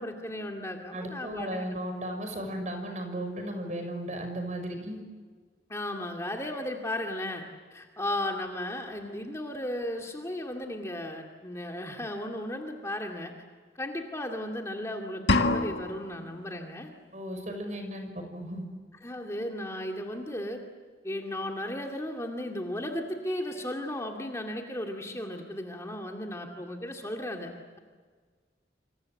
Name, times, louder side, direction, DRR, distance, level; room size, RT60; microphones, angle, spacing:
voice 1, 0.0-1.6 5.7-7.4 7.7-13.3 13.8-16.9 19.0-20.6 21.0-27.5, left 1 dB, 15° left, 1 dB, 2.4 m, -35 dB
voice 2, 0.9-5.0 17.1-18.7, right 1 dB, 40° right, 5 dB, 6.1 m, -35 dB
sound 1, 15.3-16.3, left 2 dB, 70° left, 1.7 m, -26 dB
27.5 x 27.0 x 7.8 m, 1.5 s
head